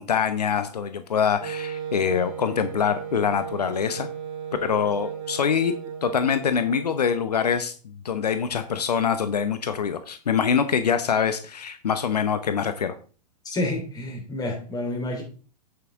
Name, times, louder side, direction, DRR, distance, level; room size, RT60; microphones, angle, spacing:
voice 1, 0.0-4.1 4.6-5.7 6.0-7.7 8.0-12.9, left 7 dB, 75° left, 10 dB, 0.9 m, -24 dB
Wind instrument woodwind instrument, 1.4-7.1, right 8 dB, 50° right, 2.2 m, -35 dB
voice 2, 13.4-15.2, left 1 dB, 20° left, 1 dB, 3.6 m, -29 dB
8.9 x 7.4 x 3.6 m, 0.38 s
figure-of-eight pair, 110°, 21 cm